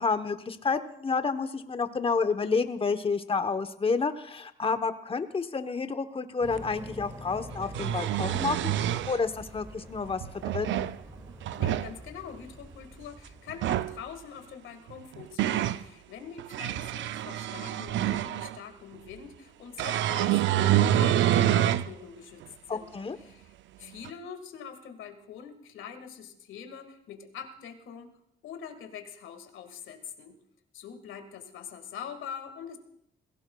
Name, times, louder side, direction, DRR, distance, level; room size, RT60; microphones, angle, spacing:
voice 1, 0.0-10.2 10.5-10.9 22.7-23.2, left 4 dB, 30° left, 9 dB, 1.0 m, -30 dB
sound 1, 6.4-14.2, equal, 15° right, 2.1 m, -47 dB
sound 2, 6.6-6.7 7.5-9.2 10.2-11.0 11.4-11.9 13.5-13.9 14.9-15.8 16.4-18.6 19.8-21.9 22.4-22.5 24.0-24.1, right 12 dB, 70° right, 0.5 m, -27 dB
voice 2, 11.6-22.4 22.7-22.9 23.2-23.5 23.8-28.1 28.4-30.4 30.7-32.8, left 7 dB, 80° left, 6 dB, 1.7 m, -44 dB
22.0 x 16.5 x 2.3 m, 0.73 s
cardioid pair, 90°, 20 cm